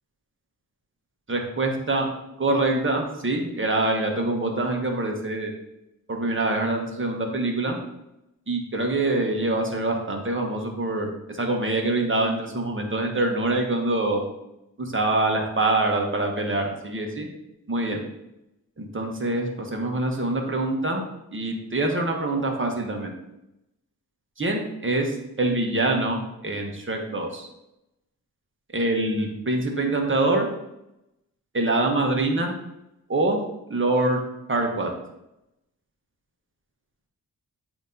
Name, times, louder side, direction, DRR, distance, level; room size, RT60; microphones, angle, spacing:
voice 1, 1.3-2.1 2.4-5.5 6.1-7.8 8.5-14.2 14.8-17.3 17.7-18.0 18.8-21.0 21.3-23.1 24.4-27.5 28.7-30.5 31.5-32.5 33.1-33.4 33.7-34.2 34.5-34.9, right 2 dB, 35° right, 2 dB, 1.3 m, -25 dB
8.1 x 3.0 x 4.0 m, 0.86 s
cardioid pair, 60°, 37 cm